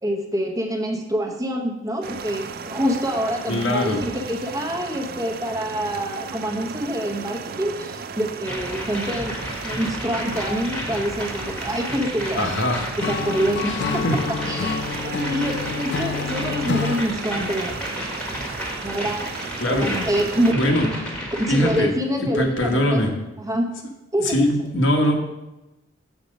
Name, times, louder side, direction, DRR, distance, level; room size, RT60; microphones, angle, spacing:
voice 1, 0.0-9.3 9.6-12.6 13.0-14.0 14.5-17.8 18.8-19.3 19.7-20.6 21.3-23.0 23.4-23.7 24.1-24.5, equal, 20° right, 2 dB, 0.8 m, -26 dB
sound 1, 2.0-20.5, right 5 dB, 50° right, 0.4 m, -36 dB
voice 2, 3.5-4.0 12.3-12.9 13.6-14.1 19.6-19.9 20.5-20.9 21.5-21.9 22.2-23.1 24.2-25.1, left 1 dB, 90° left, 2 dB, 1.3 m, -22 dB
sound 2, 8.4-21.9, equal, 5° left, 1.2 m, -32 dB
Acoustic guitar / Strum, 13.0-17.1, left 5 dB, 60° left, 0.3 m, -28 dB
7.2 x 5.0 x 5.2 m, 0.99 s
head